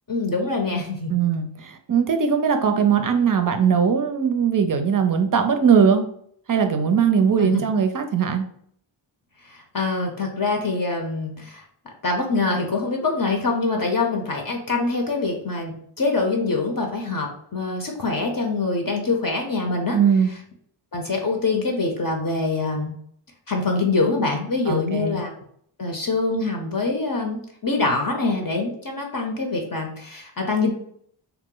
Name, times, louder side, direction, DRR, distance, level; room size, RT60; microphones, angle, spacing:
voice 1, 0.1-1.1 7.4-7.6 9.4-11.6 12.0-20.0 20.9-22.9 23.5-25.3 25.8-30.7, left 3 dB, 45° left, 1 dB, 0.6 m, -24 dB
voice 2, 1.1-6.0 6.5-8.4 19.9-20.3 24.7-25.2, right 6 dB, 40° right, 7 dB, 0.5 m, -20 dB
2.8 x 2.0 x 3.7 m, 0.65 s
wide cardioid pair, 55°, 49 cm